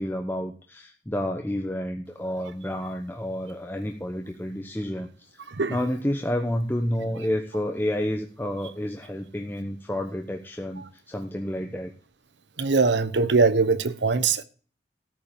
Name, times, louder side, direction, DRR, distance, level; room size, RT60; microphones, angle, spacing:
voice 1, 0.0-5.4 5.7-11.9, left 1 dB, 10° left, 1.0 m, -30 dB
voice 2, 12.6-14.4, right 4 dB, 85° right, 0.9 m, -22 dB
13.5 x 5.7 x 8.5 m
head